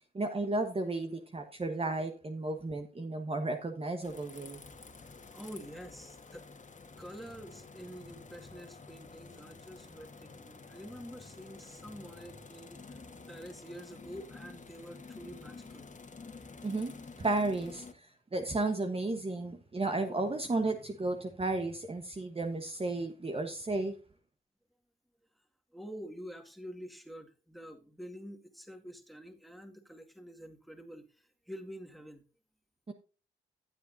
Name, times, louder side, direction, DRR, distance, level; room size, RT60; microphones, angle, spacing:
voice 1, 0.1-4.6 16.6-16.9 17.2-24.0 32.9-33.0, right 2 dB, 30° right, 5 dB, 1.2 m, -33 dB
sound 1, 4.0-17.9, left 4 dB, 40° left, 1.8 m, -50 dB
voice 2, 5.3-6.4 7.0-13.0 13.3-15.8 25.7-31.1 31.5-32.2, equal, ahead, 4 dB, 2.1 m, -47 dB
14.5 x 8.1 x 2.7 m, 0.34 s
supercardioid pair, 50°, 20 cm